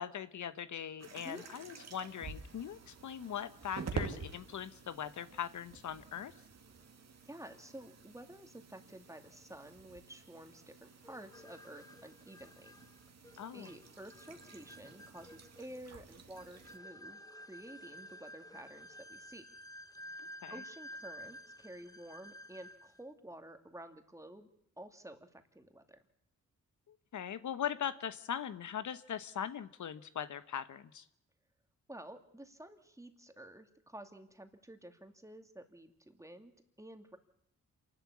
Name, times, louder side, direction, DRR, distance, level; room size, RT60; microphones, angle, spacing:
voice 1, 0.0-6.3 13.4-13.7 20.4-20.5 26.9-31.1, left 9 dB, 70° left, 13 dB, 0.9 m, -40 dB
sound 1, 1.0-16.8, right 5 dB, 55° right, 2.2 m, -49 dB
voice 2, 7.2-12.7 13.5-19.5 20.5-24.5 24.8-26.0 31.9-36.5 36.8-37.2, right 1 dB, 10° right, 6 dB, 2.3 m, -51 dB
sound 2, 11.0-23.0, equal, 10° left, 1.0 m, -52 dB
27.0 x 12.0 x 8.4 m, 0.78 s
cardioid pair, 70°, 31 cm